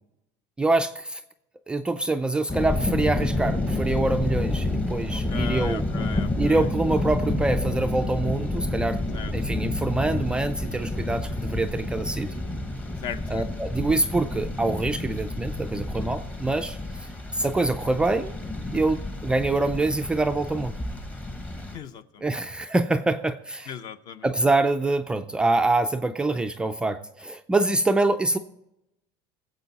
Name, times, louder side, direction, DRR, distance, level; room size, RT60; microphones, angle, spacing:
voice 1, 0.6-1.2 1.7-5.8 6.4-9.0 9.3-12.3 13.3-16.8 17.3-18.3 18.7-20.7 22.2-23.7 24.2-28.4, right 2 dB, 10° right, 6 dB, 0.4 m, -25 dB
sound 1, 2.5-21.8, left 2 dB, 15° left, 1.0 m, -29 dB
voice 2, 5.1-6.7 9.1-9.3 13.0-13.5 21.7-22.3 23.7-24.3, left 8 dB, 35° left, 12 dB, 0.8 m, -38 dB
21.5 x 8.0 x 4.1 m, 0.88 s
cardioid pair, 165°, 11 cm